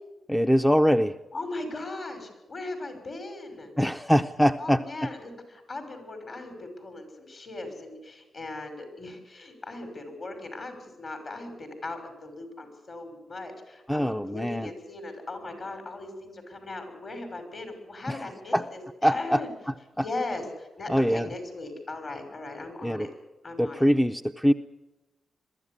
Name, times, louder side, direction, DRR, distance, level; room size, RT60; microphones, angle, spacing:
voice 1, 0.3-1.2 3.8-5.1 13.9-14.7 18.1-18.2 18.5-18.7 19.0-19.4 20.0-20.1 20.9-21.3 22.8-23.1 23.6-24.5, equal, 5° left, 8 dB, 0.6 m, -23 dB
voice 2, 1.3-3.7 4.6-19.5 20.0-23.1 23.4-23.8, left 2 dB, 45° left, 7 dB, 6.1 m, -38 dB
22.5 x 14.0 x 9.8 m, 1.0 s
cardioid pair, 95°, 0 cm